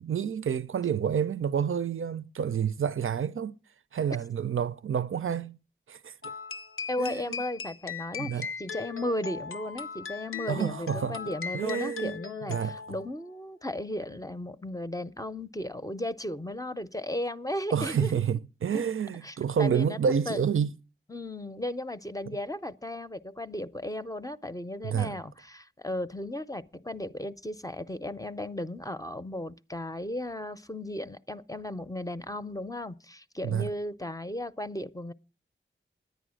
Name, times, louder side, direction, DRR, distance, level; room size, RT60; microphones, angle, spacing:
voice 1, 0.0-3.6 3.9-5.6 5.9-6.3 7.0-7.4 8.2-8.5 10.5-12.2 12.5-12.8 17.7-20.7 22.3-22.4 24.8-25.2 33.4-33.7, right 7 dB, 80° right, 0.5 m, -29 dB
sound 1, 6.2-13.1, left 6 dB, 85° left, 0.5 m, -39 dB
voice 2, 6.9-18.1 19.2-20.0 20.3-20.4 21.1-35.1, left 1 dB, 15° left, 0.5 m, -35 dB
10.5 x 9.1 x 6.3 m
wide cardioid pair, 60°, 21 cm